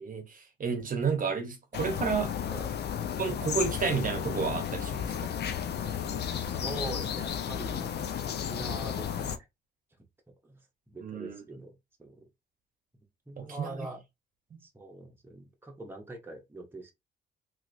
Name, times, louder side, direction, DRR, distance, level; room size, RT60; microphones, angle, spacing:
voice 1, 0.0-2.3 3.2-5.3 11.0-11.4 13.4-13.9 14.5-14.6, right 5 dB, 45° right, 0.9 m, -31 dB
sound 1, 1.7-9.4, left 8 dB, 55° left, 0.6 m, -33 dB
voice 2, 6.3-8.0 8.3-9.5 10.4-10.6 10.9-12.2 13.3-14.0 14.6-16.9, right 2 dB, 10° right, 1.0 m, -43 dB
3.0 x 2.9 x 2.6 m
cardioid pair, 90°, 20 cm